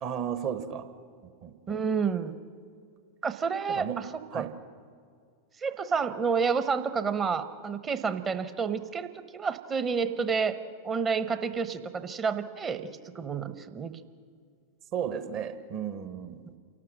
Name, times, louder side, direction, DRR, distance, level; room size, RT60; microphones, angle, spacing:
voice 1, 0.0-0.9 1.4-1.8 3.7-4.1 4.3-4.6 14.9-16.5, right 8 dB, 40° right, 10 dB, 1.2 m, -34 dB
voice 2, 1.7-2.3 3.2-4.5 5.6-10.6 10.8-14.0, right 5 dB, 25° right, 11 dB, 0.9 m, -30 dB
28.0 x 12.5 x 7.6 m, 2.2 s
figure-of-eight pair, 90°, 0 cm